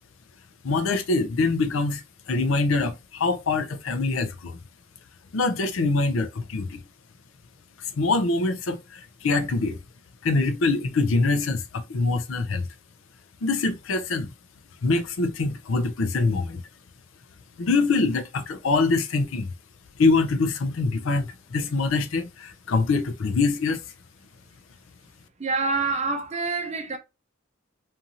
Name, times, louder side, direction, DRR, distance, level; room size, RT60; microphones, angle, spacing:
voice 1, 0.6-2.0 2.3-4.6 5.3-6.8 8.0-9.8 10.2-12.7 13.4-14.3 14.8-16.6 17.6-19.5 20.0-23.8, left 3 dB, 75° left, 0.5 m, -24 dB
voice 2, 25.4-27.0, right 3 dB, 35° right, 0.5 m, -26 dB
2.6 x 2.6 x 2.8 m
head